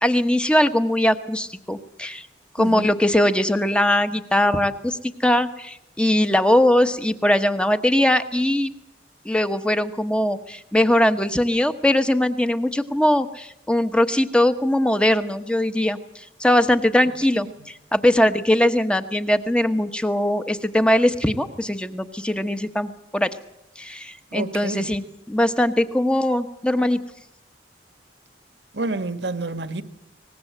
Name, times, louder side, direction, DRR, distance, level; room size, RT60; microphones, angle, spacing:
voice 1, 0.0-2.3 2.5-8.7 9.2-23.3 23.8-27.0, left 1 dB, 5° left, 1.1 m, -21 dB
voice 2, 2.6-2.9 17.6-17.7 24.3-25.0 28.7-29.8, right 2 dB, 80° right, 1.5 m, -29 dB
24.0 x 19.5 x 7.9 m
head